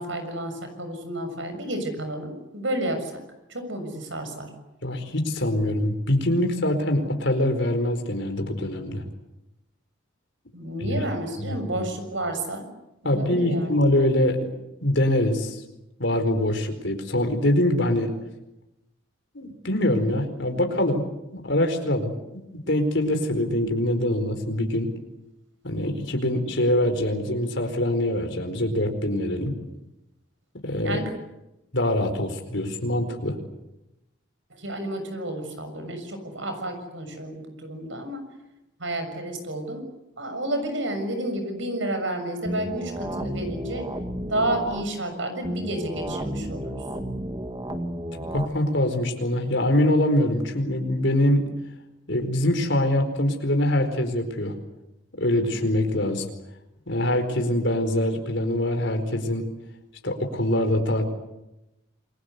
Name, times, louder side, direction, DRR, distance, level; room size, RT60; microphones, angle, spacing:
voice 1, 0.0-3.1 3.5-4.5 10.5-12.7 13.0-13.8 30.8-31.1 34.5-38.2 38.8-39.8 40.2-43.9 44.3-46.8, right 1 dB, 70° right, 7 dB, 6.8 m, -31 dB
voice 2, 4.8-9.0 10.8-11.0 11.4-11.9 13.0-14.4 14.8-15.6 16.0-18.1 19.3-21.0 21.3-24.9 25.6-29.5 30.6-31.0 31.7-33.4 48.1-51.5 52.1-54.5 55.2-56.2 56.9-59.5 60.0-61.1, left 1 dB, 60° left, 5 dB, 4.6 m, -24 dB
sound 1, 42.5-44.8 45.4-48.5, equal, 20° right, 2.0 m, -32 dB
28.0 x 22.5 x 8.2 m, 0.93 s
head